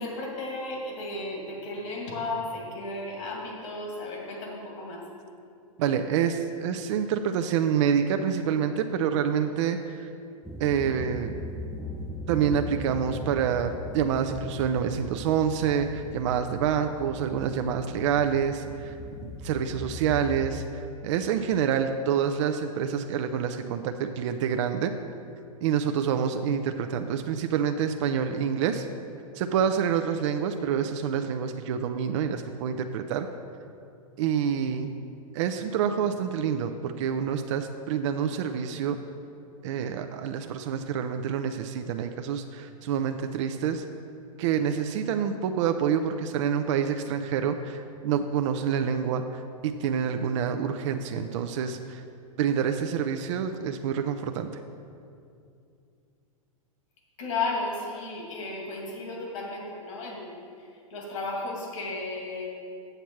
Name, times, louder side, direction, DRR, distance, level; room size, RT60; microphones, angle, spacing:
voice 1, 0.0-5.0 57.2-62.5, left 2 dB, 60° left, -1 dB, 2.2 m, -34 dB
voice 2, 5.8-10.1 10.6-11.3 12.3-24.9 25.6-28.9 29.3-33.3 34.2-34.9 35.3-39.0 39.6-43.8 44.4-52.0 52.4-54.5, right 8 dB, 55° right, 7 dB, 0.5 m, -27 dB
sound 1, 10.4-20.5, left 1 dB, ahead, 0.4 m, -39 dB
7.9 x 7.1 x 4.5 m, 2.5 s
hypercardioid pair, 120°, 18 cm